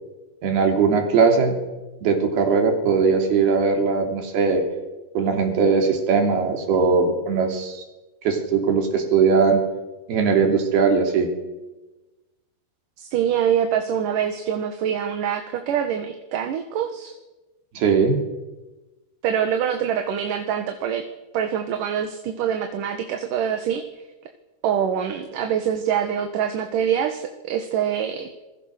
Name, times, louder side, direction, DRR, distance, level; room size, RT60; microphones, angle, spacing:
voice 1, 0.4-1.6 2.0-4.6 5.2-7.8 8.2-9.6 10.1-11.3 17.8-18.2, right 5 dB, 85° right, 3 dB, 5.2 m, -19 dB
voice 2, 13.0-17.1 19.2-21.1 21.3-23.8 24.6-28.3, right 8 dB, 65° right, 6 dB, 2.9 m, -25 dB
27.0 x 22.0 x 6.6 m, 1.1 s
omnidirectional pair, 4.4 m